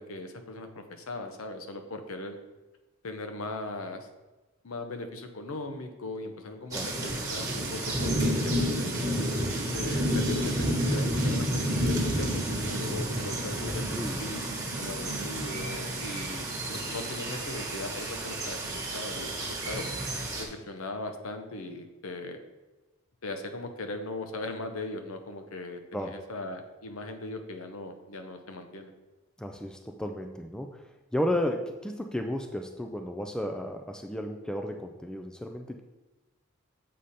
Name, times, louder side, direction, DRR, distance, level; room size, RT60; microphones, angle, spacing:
voice 1, 0.0-2.4 3.0-4.1 4.6-8.9 9.6-14.4 14.8-19.8 20.4-22.4 23.2-28.9, left 2 dB, 70° left, 6 dB, 0.8 m, -39 dB
sound 1, 6.7-20.4, right 1 dB, 15° right, 1.3 m, -30 dB
sound 2, 7.1-13.0, right 2 dB, 40° right, 1.4 m, -40 dB
voice 2, 13.6-14.2 25.9-26.2 29.4-30.8 31.1-35.8, equal, 5° left, 3 dB, 0.3 m, -33 dB
7.6 x 5.0 x 4.2 m, 1.1 s
head